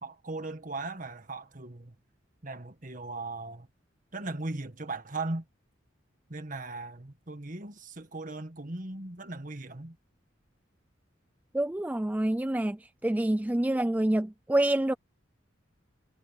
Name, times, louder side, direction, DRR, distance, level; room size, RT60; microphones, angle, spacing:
voice 1, 0.0-1.9 2.4-3.7 4.1-5.5 6.3-10.0, right 2 dB, 40° right, 1.8 m, -38 dB
voice 2, 11.5-12.8 13.0-14.9, right 1 dB, 10° right, 0.3 m, -27 dB
head